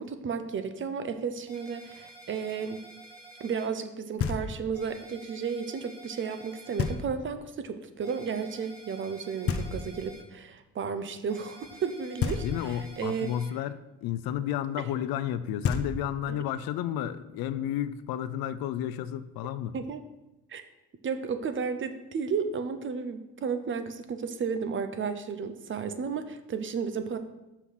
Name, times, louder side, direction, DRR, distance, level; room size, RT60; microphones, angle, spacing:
voice 1, 0.0-2.8 3.4-13.4 14.8-14.9 16.3-16.4 19.7-20.0 20.5-20.6 21.0-27.2, right 6 dB, 35° right, 9 dB, 0.6 m, -33 dB
sound 1, 1.5-3.7 4.7-6.9 8.0-10.2 11.3-13.5, right 2 dB, 5° left, 2.4 m, -50 dB
Knock, 4.2-4.9 6.8-7.4 9.5-10.3 12.2-13.0 15.3-15.4 15.6-16.4, left 6 dB, 40° left, 0.6 m, -32 dB
voice 2, 12.4-19.8, left 11 dB, 80° left, 14 dB, 0.6 m, -32 dB
5.9 x 5.7 x 6.2 m, 0.98 s
cardioid pair, 145°, 35 cm